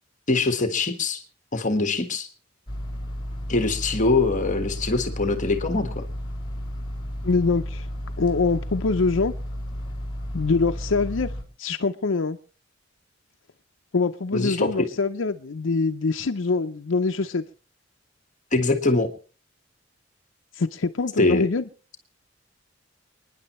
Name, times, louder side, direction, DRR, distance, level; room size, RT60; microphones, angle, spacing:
voice 1, 0.3-1.2 1.5-2.3 3.5-6.0 14.3-14.7 18.5-19.1 21.2-21.5, left 3 dB, 40° left, 1.6 m, -23 dB
sound 1, 2.7-11.4, equal, 25° left, 3.6 m, -33 dB
voice 2, 7.2-7.9 8.2-9.3 10.3-11.3 11.6-12.4 13.9-17.4 20.5-21.6, left 4 dB, 80° left, 0.7 m, -24 dB
29.0 x 10.0 x 3.1 m
head